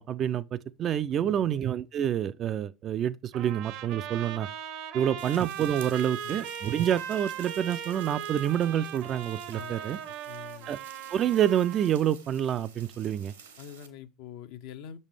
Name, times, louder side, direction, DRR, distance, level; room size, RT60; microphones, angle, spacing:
voice 1, 0.0-4.5 4.9-10.0 10.7-10.8 11.1-13.3, right 10 dB, 40° right, 0.3 m, -28 dB
voice 2, 1.2-1.5 4.9-5.3 6.2-6.4 9.5-10.7 13.6-15.0, left 9 dB, 60° left, 0.6 m, -46 dB
Trumpet, 3.3-12.0, right 9 dB, 55° right, 0.7 m, -39 dB
sound 1, 5.2-13.9, right 6 dB, 75° right, 1.1 m, -52 dB
6.4 x 5.4 x 3.1 m
figure-of-eight pair, 65°, 0 cm